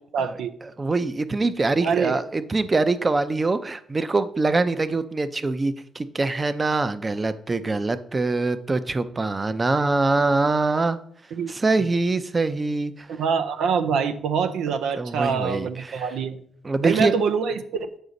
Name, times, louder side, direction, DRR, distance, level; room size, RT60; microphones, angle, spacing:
voice 1, 0.1-0.5 1.8-2.2 11.3-11.5 11.8-11.9 13.1-16.4 16.8-17.9, right 6 dB, 80° right, 0.5 m, -25 dB
voice 2, 0.8-11.0 11.5-13.1 15.0-16.0 16.6-17.1, right 3 dB, 30° right, 0.6 m, -24 dB
8.0 x 4.9 x 4.0 m
cardioid pair, 75°, 0 cm